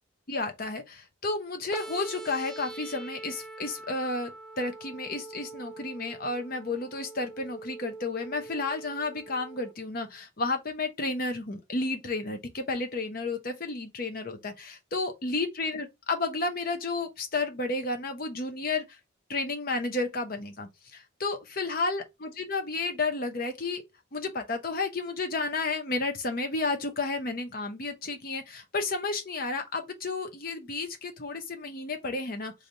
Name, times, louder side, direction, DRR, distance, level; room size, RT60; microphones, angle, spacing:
voice 1, 0.3-18.8 19.3-23.8 24.1-32.5, left 3 dB, 45° left, 0.7 m, -32 dB
sound 1, 1.7-9.7, right 2 dB, 5° left, 0.3 m, -43 dB
3.2 x 2.6 x 4.1 m
head